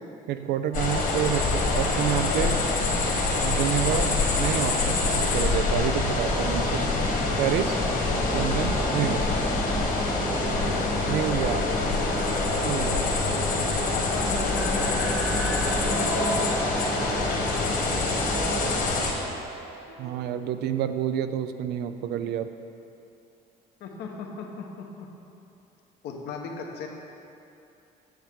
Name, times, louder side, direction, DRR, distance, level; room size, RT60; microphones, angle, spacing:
voice 1, 0.3-2.6 3.4-7.0 7.4-7.8 8.3-9.2 11.1-11.6 12.6-13.0 20.0-22.5, right 10 dB, 75° right, 9 dB, 0.4 m, -28 dB
sound 1, 0.7-19.1, left 3 dB, 60° left, 1.6 m, -25 dB
sound 2, 0.7-20.3, right 3 dB, 25° right, 1.3 m, -42 dB
sound 3, 6.4-18.8, right 1 dB, 5° right, 0.7 m, -34 dB
voice 2, 11.5-12.6 13.9-15.1 15.6-16.6 23.8-25.1 26.0-26.9, left 4 dB, 80° left, 1 dB, 1.1 m, -37 dB
8.7 x 7.3 x 3.6 m, 2.7 s
cardioid pair, 110°, 17 cm